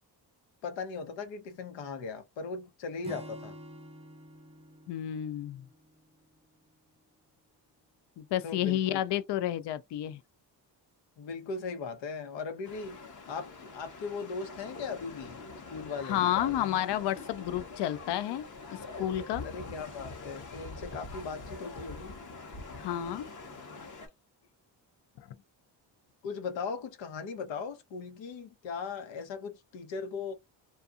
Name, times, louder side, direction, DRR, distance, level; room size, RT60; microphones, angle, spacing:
voice 1, 0.6-3.5 8.4-9.0 11.2-13.0 13.3-15.4 15.7-16.2 16.6-16.8 19.4-22.2 26.2-30.3, left 5 dB, 90° left, 0.9 m, -38 dB
Acoustic guitar / Strum, 3.0-6.5, equal, 15° right, 0.4 m, -49 dB
voice 2, 4.9-5.7 8.2-10.2 16.0-19.5 22.7-23.3 25.2-25.3, left 12 dB, 70° left, 0.5 m, -31 dB
sound 1, 12.6-24.1, left 3 dB, 45° left, 0.8 m, -44 dB
2.7 x 2.3 x 2.4 m
cardioid pair, 110°, 43 cm